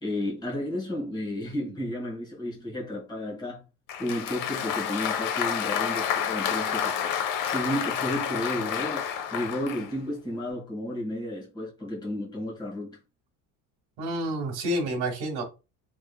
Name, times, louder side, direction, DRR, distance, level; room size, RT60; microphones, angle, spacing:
voice 1, 0.0-3.6 4.0-7.1 7.5-13.0, left 1 dB, 10° left, 1.6 m, -32 dB
Applause, 3.9-9.9, left 8 dB, 55° left, 0.7 m, -29 dB
voice 2, 14.0-15.4, right 1 dB, 70° right, 1.4 m, -29 dB
3.5 x 3.3 x 2.3 m
cardioid pair, 150°, 40 cm